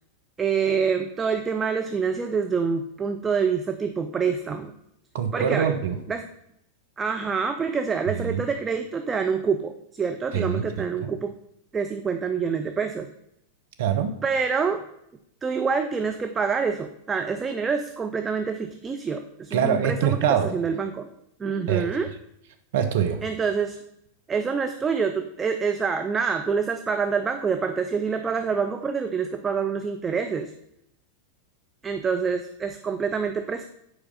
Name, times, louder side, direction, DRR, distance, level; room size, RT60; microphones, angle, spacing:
voice 1, 0.4-4.7 5.3-5.7 6.1-6.3 7.0-11.3 11.7-13.1 14.2-14.8 15.4-20.2 20.5-21.1 21.4-22.1 23.2-23.8 24.3-30.5 31.8-33.6, right 5 dB, 20° right, 5 dB, 0.5 m, -26 dB
voice 2, 5.1-6.0 8.1-8.4 10.3-11.1 13.8-14.1 19.5-20.5 21.7-22.0 22.7-23.2, right 8 dB, 55° right, 5 dB, 0.9 m, -24 dB
7.7 x 4.9 x 5.4 m, 0.77 s
figure-of-eight pair, 90°, 0 cm